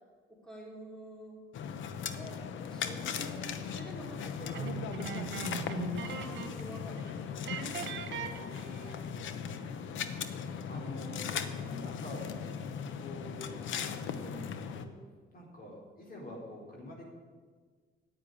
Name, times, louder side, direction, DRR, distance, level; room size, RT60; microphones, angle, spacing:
voice 1, 0.3-1.4 2.1-5.2 6.1-7.4 7.7-8.4 9.1-9.8, right 1 dB, 5° left, -2 dB, 3.3 m, -49 dB
sound 1, 1.5-14.9, left 7 dB, 75° left, 1.0 m, -38 dB
sound 2, 4.5-6.7 7.0-7.1 7.4-9.1, right 7 dB, 65° right, 1.3 m, -40 dB
voice 2, 10.6-12.6 12.9-15.0 15.3-17.0, left 1 dB, 45° left, -1 dB, 4.2 m, -46 dB
10.0 x 8.8 x 9.9 m, 1.5 s
cardioid pair, 90°, 20 cm